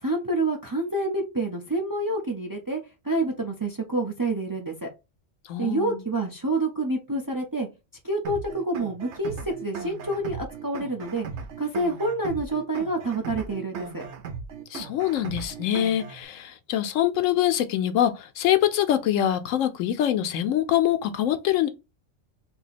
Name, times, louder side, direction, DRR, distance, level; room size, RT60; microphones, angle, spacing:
voice 1, 0.0-2.8 3.0-4.9 5.6-7.7 8.0-11.3 11.6-14.1, right 2 dB, 25° right, 0.5 m, -28 dB
voice 2, 5.5-6.0 14.7-21.7, left 11 dB, 85° left, 1.0 m, -24 dB
sound 1, 8.2-16.2, right 5 dB, 65° right, 0.9 m, -37 dB
2.8 x 2.7 x 4.1 m
omnidirectional pair, 1.3 m